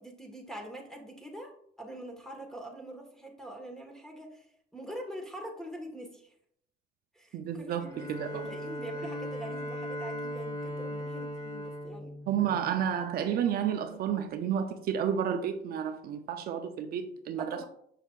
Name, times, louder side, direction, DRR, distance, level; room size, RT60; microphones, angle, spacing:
voice 1, 0.0-1.5 1.8-6.3 7.1-12.1 17.4-17.7, right 1 dB, 5° left, 1.5 m, -44 dB
voice 2, 7.3-8.5 12.3-17.7, right 8 dB, 65° right, 0.6 m, -31 dB
Bowed string instrument, 7.8-13.0, equal, 25° left, 2.3 m, -38 dB
6.7 x 6.2 x 2.5 m
cardioid pair, 110°, 17 cm